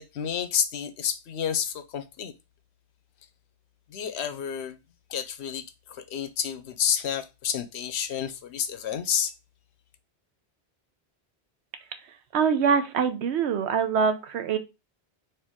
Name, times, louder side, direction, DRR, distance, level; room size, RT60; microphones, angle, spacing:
voice 1, 0.0-2.3 3.9-4.8 5.1-9.3, left 8 dB, 85° left, 0.9 m, -30 dB
voice 2, 12.3-14.6, right 6 dB, 90° right, 1.0 m, -24 dB
4.4 x 2.9 x 3.5 m
omnidirectional pair, 1.1 m